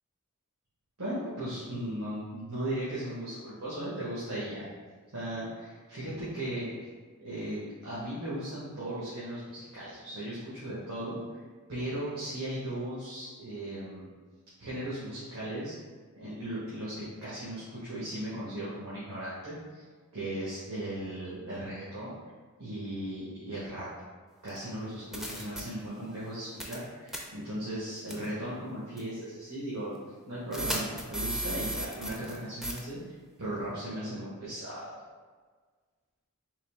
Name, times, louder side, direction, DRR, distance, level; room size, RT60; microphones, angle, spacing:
voice 1, 1.0-4.7 5.1-6.9 7.2-11.4 11.7-14.1 14.6-15.7 16.2-19.8 20.1-22.2 22.6-23.9 24.4-33.0 33.4-34.9, right 1 dB, 90° right, -10 dB, 1.1 m, -37 dB
sound 1, 24.5-24.6 25.1-25.6 26.6-26.8 27.1-27.2 28.1-28.3 29.0-29.1 30.5-32.4 32.6-32.8, right 1 dB, ahead, 0.4 m, -34 dB
3.8 x 2.7 x 3.4 m, 1.5 s
head